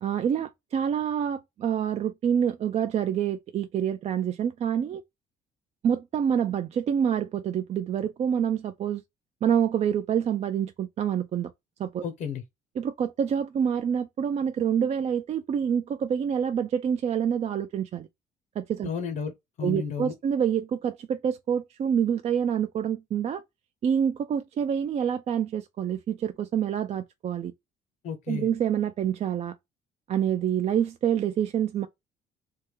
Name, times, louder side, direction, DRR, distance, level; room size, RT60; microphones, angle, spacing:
voice 1, 0.0-5.0 5.8-9.0 9.4-11.5 11.8-12.0 12.8-18.1 18.6-18.9 19.6-23.4 23.8-27.5 28.3-29.5 30.1-31.9, right 8 dB, 40° right, 0.4 m, -27 dB
voice 2, 12.0-12.4 18.8-20.1 28.0-28.5, left 6 dB, 60° left, 0.7 m, -33 dB
3.4 x 2.1 x 3.0 m
cardioid pair, 110°, 17 cm